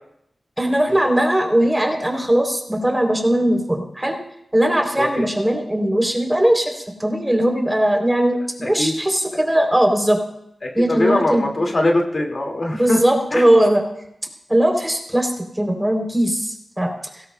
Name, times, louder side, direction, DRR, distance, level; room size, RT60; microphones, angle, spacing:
voice 1, 0.6-4.2 4.5-10.2 10.7-11.5 12.7-13.8 14.5-17.2, right 1 dB, 10° right, 2 dB, 3.1 m, -19 dB
voice 2, 8.6-8.9 10.6-13.0 13.3-13.4, left 1 dB, 50° left, 2 dB, 2.0 m, -22 dB
17.5 x 16.5 x 2.2 m, 0.78 s
cardioid pair, 55°, 0 cm